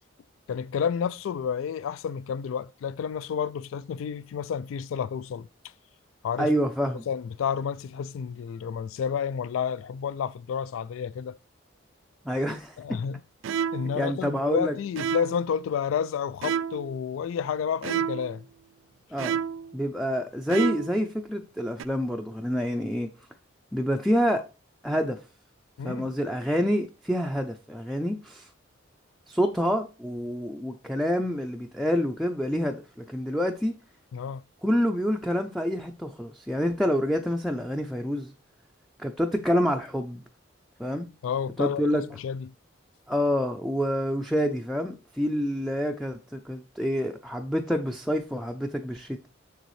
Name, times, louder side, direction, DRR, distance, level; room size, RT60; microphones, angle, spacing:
voice 1, 0.5-5.5 6.2-6.5 7.1-11.3 12.8-13.2 13.7-18.4 25.8-26.1 34.1-34.4 41.2-42.5, left 7 dB, 85° left, 0.3 m, -30 dB
voice 2, 6.4-7.0 12.3-13.0 14.0-14.7 19.1-19.4 19.7-23.1 23.7-24.4 24.8-25.2 25.8-28.5 29.3-33.8 34.6-38.3 39.0-40.2 40.8-41.1 41.6-42.0 43.1-49.3, equal, ahead, 0.4 m, -27 dB
sound 1, 13.4-14.0 15.0-15.5 16.4-17.0 17.8-18.4 19.2-19.7 20.5-21.0 21.8-21.9, right 8 dB, 75° right, 0.3 m, -30 dB
7.0 x 6.5 x 3.1 m
head